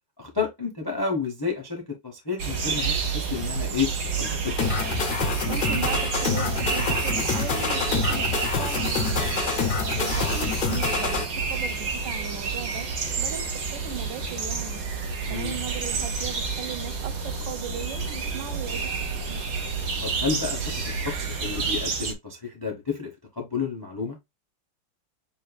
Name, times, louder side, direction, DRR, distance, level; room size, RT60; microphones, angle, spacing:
voice 1, 0.2-3.9 4.2-4.6 10.3-10.5 15.2-15.5 20.0-24.2, left 5 dB, 25° left, 0.5 m, -31 dB
sound 1, 2.4-22.1, right 5 dB, 55° right, 1.4 m, -29 dB
sound 2, 4.6-11.2, left 5 dB, 85° left, 0.4 m, -27 dB
voice 2, 5.4-9.6 10.0-12.9 13.2-14.8 15.3-18.9 19.3-19.4, right 9 dB, 80° right, 1.3 m, -37 dB
7.4 x 2.6 x 2.2 m
omnidirectional pair, 2.0 m